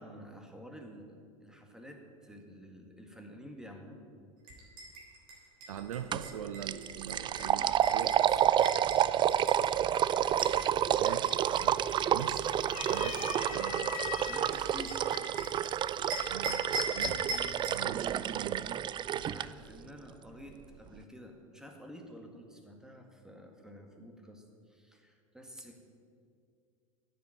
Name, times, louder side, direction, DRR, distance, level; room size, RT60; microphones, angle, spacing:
voice 1, 0.0-4.0 7.6-7.8 8.2-8.4 8.8-9.1 12.9-13.3 14.2-15.1 19.1-25.8, equal, 5° right, 3 dB, 1.9 m, -50 dB
sound 1, 4.5-10.6 11.0-15.7 16.1-17.8, right 2 dB, 60° right, 3.6 m, -41 dB
voice 2, 5.7-8.1 11.0-13.2 13.5-13.9 16.3-16.6 16.9-17.2 17.7-18.7, right 9 dB, 80° right, 9 dB, 0.6 m, -42 dB
sound 2, 6.1-6.3 6.6-19.5, right 10 dB, 25° right, 0.3 m, -29 dB
sound 3, 10.8-11.2 11.5-12.2 12.6-14.6 15.4-15.5 16.8-17.2, left 9 dB, 80° left, 1.0 m, -41 dB
9.9 x 7.6 x 9.2 m, 2.2 s
hypercardioid pair, 85°, 17 cm